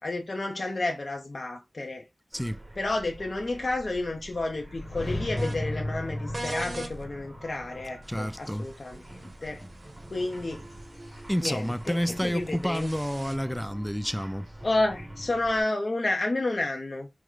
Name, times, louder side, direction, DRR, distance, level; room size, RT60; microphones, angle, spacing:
voice 1, 0.0-2.1 2.8-9.7 10.1-10.6 11.0-12.9 14.6-17.1, left 2 dB, 65° left, 0.6 m, -31 dB
sound 1, 2.3-15.6, right 1 dB, 30° right, 1.9 m, -47 dB
sound 2, 4.3-9.4, left 1 dB, 50° left, 1.0 m, -36 dB
sound 3, 5.4-5.5 6.3-6.9 8.0-13.4, right 2 dB, 65° right, 1.0 m, -42 dB
voice 2, 8.1-8.7 11.3-14.5, equal, 5° left, 0.3 m, -29 dB
4.6 x 2.1 x 3.7 m
cardioid pair, 40°, 0 cm